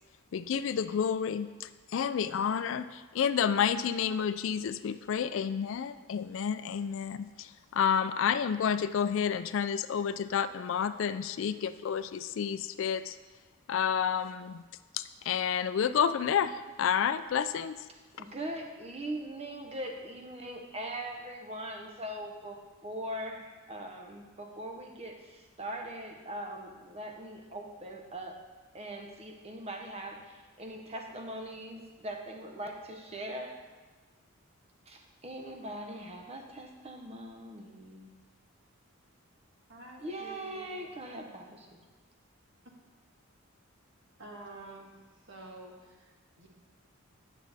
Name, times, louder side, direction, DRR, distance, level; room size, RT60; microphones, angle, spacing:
voice 1, 0.3-13.2 13.7-14.6 14.9-17.8, left 7 dB, 60° left, 12 dB, 0.3 m, -30 dB
voice 2, 18.1-28.4 28.7-33.5 34.9-38.1 40.0-41.8, right 1 dB, 30° right, 3 dB, 0.8 m, -41 dB
voice 3, 39.7-40.9 44.2-45.0 45.2-46.5, right 2 dB, 55° right, 0 dB, 1.4 m, -49 dB
9.1 x 6.3 x 4.1 m, 1.3 s
head